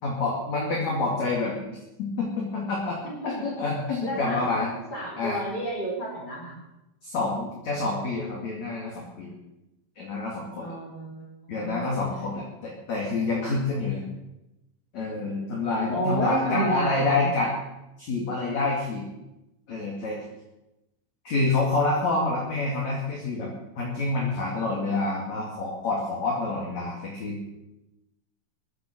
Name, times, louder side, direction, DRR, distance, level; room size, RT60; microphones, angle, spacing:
voice 1, 0.0-3.0 3.2-4.7 5.2-5.4 7.0-9.3 10.0-10.7 11.5-14.0 14.9-17.5 18.0-19.0 19.7-20.2 21.2-23.5 23.8-27.5, left 3 dB, 45° left, -3 dB, 3.0 m, -27 dB
voice 2, 3.0-3.4 4.0-4.5 4.9-6.6 10.6-11.8 14.9-15.3 15.9-17.3, right 1 dB, 20° left, -2 dB, 4.2 m, -31 dB
22.0 x 8.0 x 6.8 m, 0.95 s
omnidirectional pair, 5.7 m